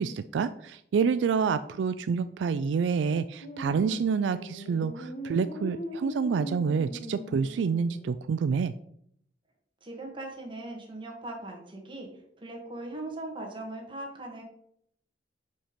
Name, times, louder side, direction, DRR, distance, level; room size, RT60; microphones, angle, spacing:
voice 1, 0.0-8.7, right 6 dB, 80° right, 13 dB, 0.3 m, -28 dB
sound 1, 3.4-8.2, equal, 50° left, 1.2 m, -40 dB
voice 2, 9.8-12.1 12.4-14.4, right 2 dB, 30° right, 0 dB, 1.7 m, -39 dB
5.6 x 5.3 x 5.1 m, 0.70 s
head